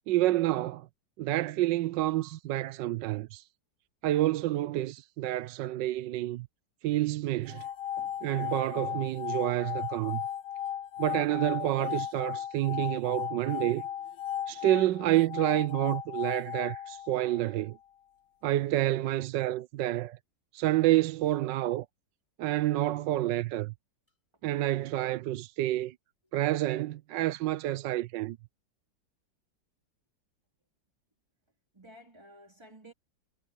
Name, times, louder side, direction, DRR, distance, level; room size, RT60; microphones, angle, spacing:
voice 1, 0.1-0.9 1.2-3.4 4.0-6.5 6.8-7.7 8.2-10.2 11.0-13.8 14.5-17.8 18.4-20.2 20.5-21.9 22.4-23.7 24.4-25.9 26.3-28.4, right 15 dB, 80° right, 1.3 m, -28 dB
sound 1, 7.5-17.6, left 10 dB, 75° left, 1.3 m, -36 dB
voice 2, 31.7-32.9, right 1 dB, 15° right, 3.7 m, -53 dB
omnidirectional pair, 2.0 m